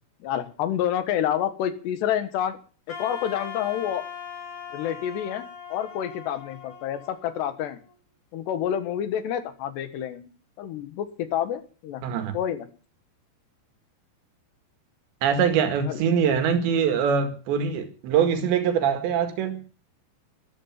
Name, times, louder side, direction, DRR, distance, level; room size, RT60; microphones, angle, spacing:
voice 1, 0.2-2.6 3.0-4.1 4.7-7.8 8.3-10.3 10.6-12.0 12.3-12.7 15.9-16.0, left 10 dB, 75° left, 3.5 m, -28 dB
Wind instrument woodwind instrument, 2.9-7.9, left 7 dB, 40° left, 3.2 m, -40 dB
voice 2, 12.0-12.3 15.2-19.6, right 7 dB, 80° right, 4.2 m, -23 dB
14.0 x 13.0 x 7.4 m
omnidirectional pair, 5.0 m